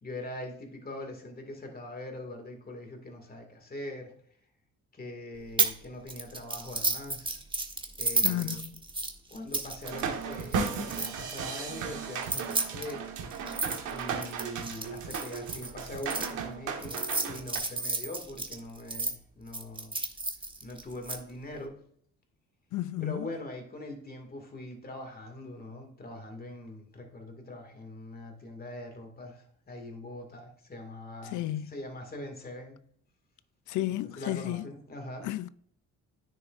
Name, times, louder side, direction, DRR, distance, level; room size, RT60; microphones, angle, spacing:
voice 1, 0.0-4.1 4.9-7.4 8.0-8.6 9.3-13.0 13.9-20.0 20.6-21.7 23.0-31.4 31.7-32.8 34.2-35.3, left 1 dB, 30° left, 2.2 m, -42 dB
sound 1, 5.6-5.8 6.1-11.4 12.1-16.3 16.8-19.1 19.5-21.2, right 3 dB, 15° right, 1.2 m, -32 dB
voice 2, 8.2-8.8 22.7-23.4 31.2-31.8 33.7-34.7 35.2-35.5, left 14 dB, 75° left, 0.5 m, -33 dB
sound 2, 9.8-17.6, right 6 dB, 85° right, 1.5 m, -35 dB
10.0 x 6.4 x 2.6 m
cardioid pair, 90°, 30 cm